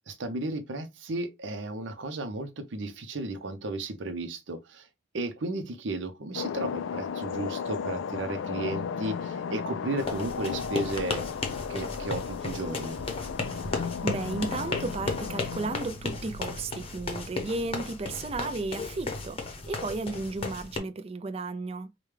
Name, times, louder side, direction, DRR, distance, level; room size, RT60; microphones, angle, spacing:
voice 1, 0.1-4.9 5.1-11.3 11.7-13.0, right 2 dB, 75° right, 0.7 m, -34 dB
sound 1, 6.3-15.8, left 7 dB, 85° left, 0.3 m, -35 dB
sound 2, 10.0-20.8, left 3 dB, 30° left, 0.8 m, -35 dB
Musical instrument, 13.5-17.1, left 5 dB, 60° right, 1.3 m, -54 dB
voice 2, 14.0-21.9, right 3 dB, 30° right, 0.4 m, -34 dB
4.9 x 2.2 x 3.2 m
head